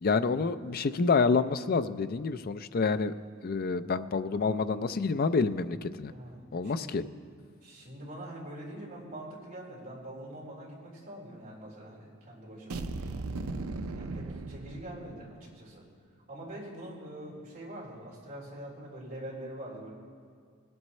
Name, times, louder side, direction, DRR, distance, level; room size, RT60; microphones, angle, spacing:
voice 1, 0.0-3.1 3.4-6.1 6.5-7.0, left 4 dB, 45° left, 11 dB, 0.4 m, -28 dB
voice 2, 6.1-7.0 7.6-12.9 13.9-15.8 16.3-19.9, right 1 dB, 45° right, -5 dB, 3.7 m, -44 dB
sound 1, 12.7-15.5, right 3 dB, 85° right, 0.6 m, -37 dB
20.0 x 7.8 x 4.3 m, 2.1 s
head